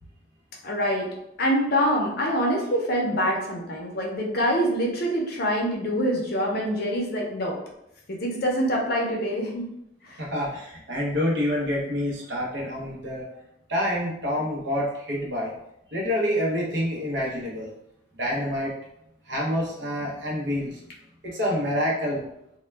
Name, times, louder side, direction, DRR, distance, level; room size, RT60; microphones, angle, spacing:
voice 1, 0.6-1.1 1.4-7.6 8.1-9.7 10.0-10.2 12.5-12.7, equal, 50° left, -1 dB, 0.6 m, -25 dB
voice 2, 10.2-13.2 13.7-15.5 15.9-17.7 18.2-18.7 19.3-20.8 21.2-22.2, equal, 60° right, -3 dB, 0.7 m, -27 dB
2.2 x 2.1 x 3.2 m, 0.80 s
head